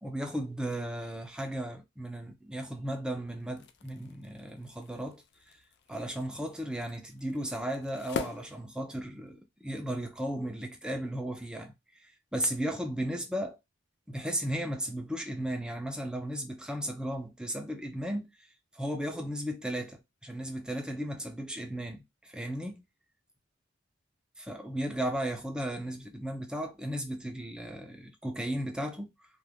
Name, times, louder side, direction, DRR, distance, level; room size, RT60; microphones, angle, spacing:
voice 1, 0.0-5.2 5.9-11.7 12.3-13.6 14.1-18.3 18.7-22.8 24.5-29.1, right 1 dB, 5° right, 0.5 m, -35 dB
sound 1, 3.4-9.4, left 5 dB, 60° left, 0.4 m, -44 dB
2.3 x 2.2 x 3.3 m
head